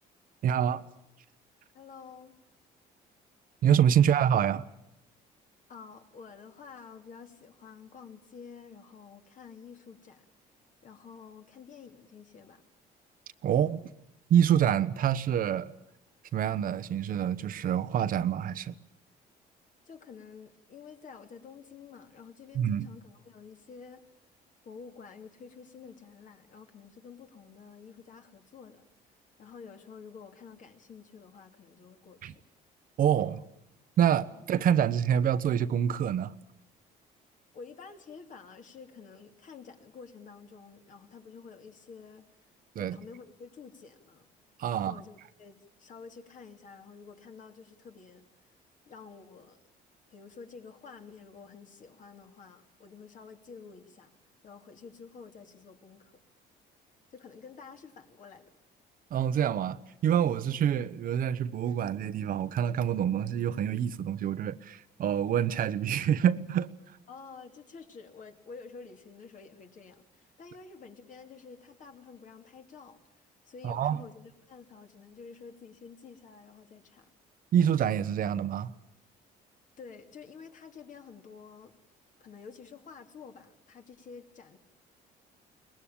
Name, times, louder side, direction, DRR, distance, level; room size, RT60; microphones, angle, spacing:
voice 1, 0.4-0.8 3.6-4.6 13.4-13.8 14.3-15.7 16.3-18.7 22.5-22.9 32.2-32.3 33.0-33.4 34.0-36.3 42.7-43.0 44.6-44.9 59.1-66.7 73.6-74.0 77.5-78.7, right 9 dB, 55° right, 1.0 m, -26 dB
voice 2, 1.7-2.3 5.7-10.2 10.8-12.7 19.8-24.0 24.6-28.9 29.4-32.4 34.4-34.5 37.5-42.5 42.8-44.3 44.7-48.5 48.9-49.6 50.1-54.1 54.4-56.2 57.1-58.5 67.1-77.0 79.8-81.7 82.2-84.6, left 5 dB, 50° left, 2.8 m, -50 dB
23.0 x 20.5 x 8.7 m
cardioid pair, 110°, 17 cm